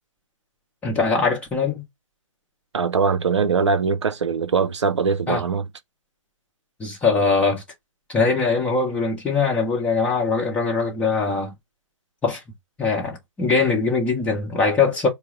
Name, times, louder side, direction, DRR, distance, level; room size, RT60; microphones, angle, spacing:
voice 1, 0.8-1.8 5.3-5.4 6.8-7.6 8.1-11.5 12.2-12.4 12.8-15.1, left 4 dB, 5° left, 1.3 m, -21 dB
voice 2, 2.7-5.7, right 5 dB, 55° right, 0.8 m, -21 dB
4.5 x 2.3 x 3.6 m
figure-of-eight pair, 140°, 18 cm